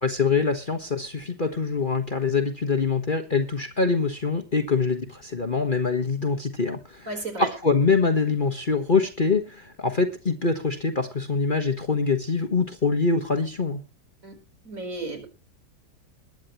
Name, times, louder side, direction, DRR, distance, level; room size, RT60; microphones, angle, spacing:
voice 1, 0.0-7.1 7.4-13.8, left 4 dB, 30° left, 4 dB, 1.5 m, -24 dB
voice 2, 7.1-7.5 14.2-14.4 14.6-15.3, right 2 dB, 50° right, 6 dB, 4.8 m, -33 dB
21.0 x 9.8 x 3.1 m, 0.30 s
omnidirectional pair, 1.8 m